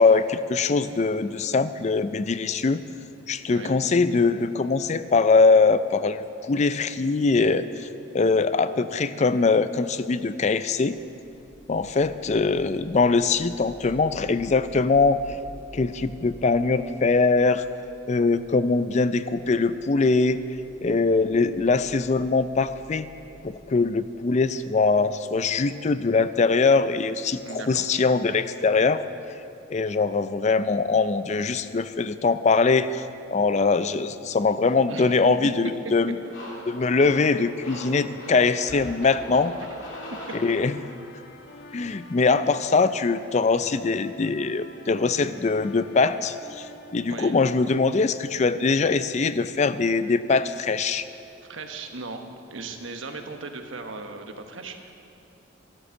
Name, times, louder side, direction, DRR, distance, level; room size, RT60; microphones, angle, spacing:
voice 1, 0.0-2.8 3.3-7.9 8.1-11.0 11.7-15.2 15.7-17.6 18.1-20.4 20.8-23.1 23.4-29.0 29.7-33.0 33.3-36.2 36.7-39.5 40.3-40.8 41.7-46.7 46.9-51.1, left 4 dB, 35° left, 13 dB, 0.4 m, -22 dB
sound 1, 11.1-25.7, right 1 dB, 5° right, 1.3 m, -48 dB
voice 2, 27.4-27.9 34.9-35.1 47.1-47.4 51.4-52.2 52.5-54.9, right 3 dB, 85° right, 5 dB, 1.3 m, -37 dB
sound 2, 36.2-41.0, equal, 75° left, 3.3 m, -41 dB
sound 3, 38.7-47.7, left 1 dB, 60° left, 1.2 m, -46 dB
13.0 x 12.0 x 7.1 m, 2.7 s
head